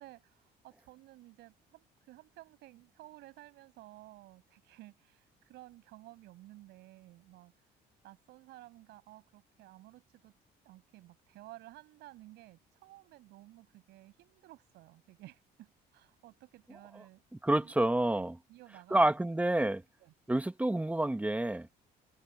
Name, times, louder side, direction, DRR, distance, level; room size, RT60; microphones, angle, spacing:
voice 1, 0.0-7.5 8.0-10.4 10.6-17.2 17.6-17.7 18.1-19.1 20.0-20.1, right 17 dB, 85° right, 7.9 m, -55 dB
voice 2, 17.4-18.4 18.9-19.8 20.3-21.7, right 1 dB, 10° right, 1.4 m, -28 dB
cardioid pair, 110°, 17 cm